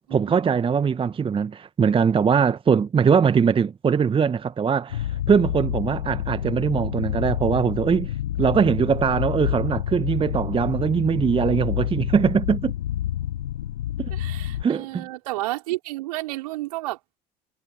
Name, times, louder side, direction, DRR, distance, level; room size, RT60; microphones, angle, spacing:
voice 1, 0.1-8.1 8.4-12.7 14.0-14.1 14.6-15.1, right 6 dB, 25° right, 1.2 m, -21 dB
sound 1, 4.9-14.6, left 12 dB, 70° left, 5.3 m, -28 dB
voice 2, 14.1-17.0, right 18 dB, 65° right, 5.4 m, -31 dB
figure-of-eight pair, 60°, 21 cm